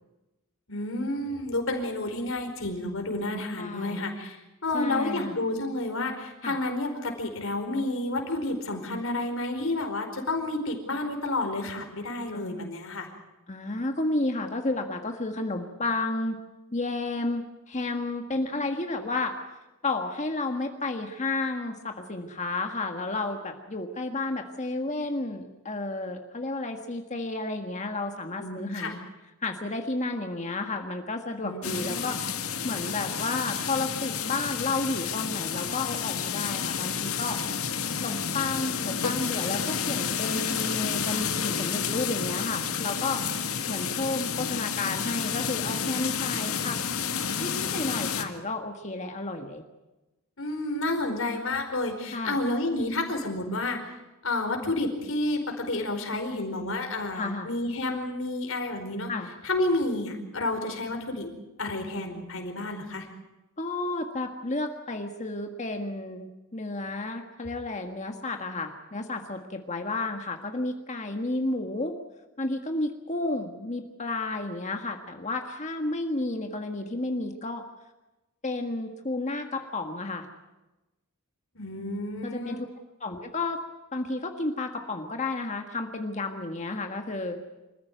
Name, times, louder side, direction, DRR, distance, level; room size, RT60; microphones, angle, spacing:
voice 1, 0.7-4.4 4.6-13.1 28.4-28.9 31.4-32.3 50.4-53.8 54.2-59.1 59.4-61.3 61.6-63.1 81.5-82.6, left 2 dB, 70° left, 4 dB, 4.8 m, -30 dB
voice 2, 3.5-4.1 4.7-5.4 6.4-6.6 12.3-12.6 13.5-16.4 16.7-19.3 19.8-29.0 29.4-32.2 32.6-37.4 38.0-43.3 43.7-46.8 47.4-49.6 52.1-52.4 57.1-57.5 59.1-59.3 63.6-71.9 72.4-77.7 78.4-80.2 82.2-82.7 83.0-83.6 83.9-87.4, left 2 dB, 35° left, 4 dB, 1.6 m, -32 dB
sound 1, 31.6-48.2, left 7 dB, 90° left, 2.0 m, -30 dB
26.5 x 15.0 x 9.3 m, 1.1 s
head